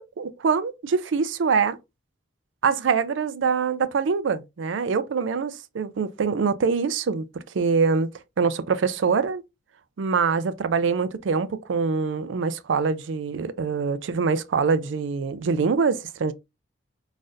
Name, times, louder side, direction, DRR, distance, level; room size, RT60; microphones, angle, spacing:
voice 1, 0.0-1.8 2.6-7.3 7.5-8.1 8.4-9.4 10.0-16.3, right 5 dB, 90° right, 0.4 m, -24 dB
3.9 x 2.5 x 2.5 m
head